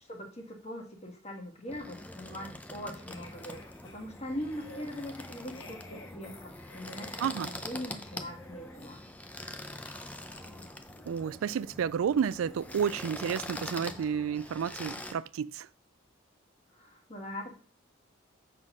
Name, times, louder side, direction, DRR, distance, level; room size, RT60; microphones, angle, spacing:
voice 1, 0.1-7.3 7.6-9.0 16.7-17.5, equal, 35° left, 1.7 m, -41 dB
sound 1, 1.7-15.1, left 1 dB, 5° left, 0.6 m, -44 dB
sound 2, 3.1-13.2 13.5-13.7, left 2 dB, 70° left, 1.6 m, -54 dB
voice 2, 7.2-7.5 11.1-15.7, right 7 dB, 90° right, 0.3 m, -31 dB
7.6 x 3.9 x 6.0 m
head